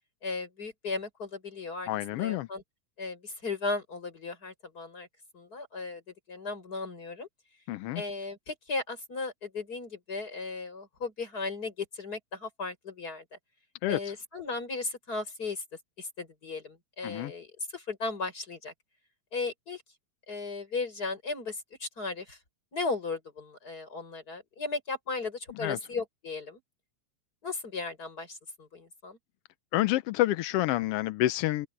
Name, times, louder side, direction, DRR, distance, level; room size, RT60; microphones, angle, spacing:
voice 1, 0.2-2.6 3.0-5.1 5.3-6.0 6.3-7.3 7.9-13.4 13.9-15.6 16.0-18.7 19.3-19.8 20.3-22.4 22.7-26.6 27.4-29.2, left 3 dB, 30° left, 6.7 m, -36 dB
voice 2, 1.9-2.5 7.7-8.0 13.8-14.0 17.0-17.3 25.6-25.8 29.7-31.7, left 15 dB, 80° left, 1.4 m, -28 dB
open air
omnidirectional pair, 3.3 m